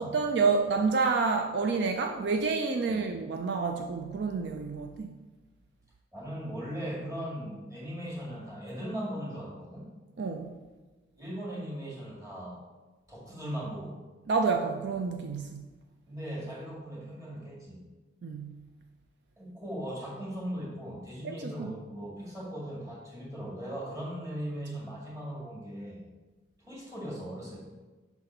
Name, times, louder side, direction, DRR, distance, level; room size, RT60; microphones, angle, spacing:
voice 1, 0.0-5.1 10.2-10.5 14.3-15.6 18.2-18.6 21.2-21.7, right 4 dB, 65° right, 4 dB, 0.4 m, -29 dB
voice 2, 6.1-9.9 11.2-12.6 13.1-14.0 16.1-17.8 19.4-26.0 26.7-27.7, equal, 20° right, -6 dB, 2.0 m, -38 dB
5.9 x 4.1 x 5.4 m, 1.2 s
head